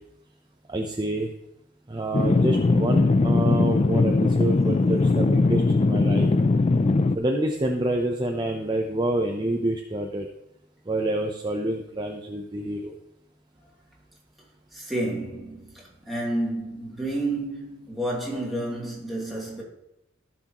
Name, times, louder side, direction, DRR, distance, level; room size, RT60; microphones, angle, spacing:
voice 1, 0.7-1.3 1.9-6.3 7.2-10.3 10.9-12.9, right 1 dB, 25° right, 0.7 m, -27 dB
sound 1, 2.1-7.2, left 3 dB, 35° left, 0.4 m, -20 dB
voice 2, 14.7-19.6, right 1 dB, ahead, 2.8 m, -30 dB
15.5 x 6.1 x 3.0 m
head